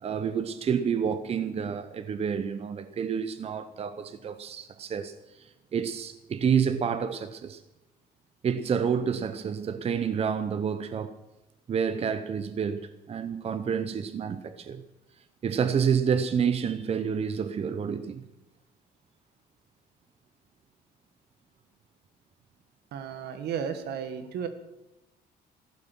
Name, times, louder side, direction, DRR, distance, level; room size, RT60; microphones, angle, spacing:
voice 1, 0.0-7.6 8.4-11.2 11.7-14.8 15.4-18.2, right 7 dB, 35° right, 0.8 m, -29 dB
voice 2, 22.9-24.5, right 7 dB, 75° right, 1.7 m, -33 dB
14.5 x 12.5 x 6.2 m
cardioid pair, 110°, 17 cm